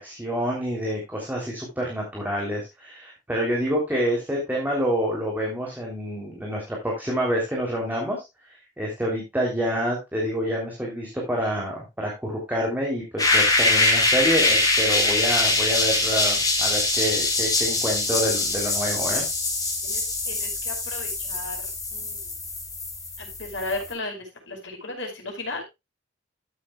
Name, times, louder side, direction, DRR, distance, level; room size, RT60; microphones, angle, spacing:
voice 1, 0.0-8.2 8.8-19.2, equal, 10° right, -2 dB, 3.3 m, -27 dB
sound 1, 13.2-23.9, left 2 dB, 20° left, 4.2 m, -23 dB
voice 2, 19.8-22.3 23.2-25.6, left 2 dB, 75° left, 2 dB, 5.2 m, -35 dB
13.5 x 8.3 x 2.3 m, 0.23 s
head